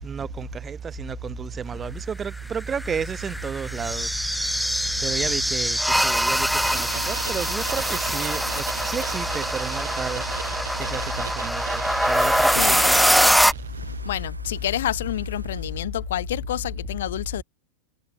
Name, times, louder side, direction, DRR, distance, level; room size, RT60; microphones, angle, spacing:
voice 1, 0.0-4.1 5.0-10.2 10.8-13.0, right 6 dB, 20° right, 7.8 m, -31 dB
sound 1, 2.6-13.5, equal, ahead, 0.7 m, -23 dB
sound 2, 5.7-15.7, right 3 dB, 80° right, 5.9 m, -47 dB
sound 3, 6.6-13.9, right 9 dB, 65° right, 4.1 m, -38 dB
voice 2, 12.5-12.9 14.0-17.4, left 12 dB, 60° left, 2.6 m, -28 dB
figure-of-eight pair, 90°, 0 cm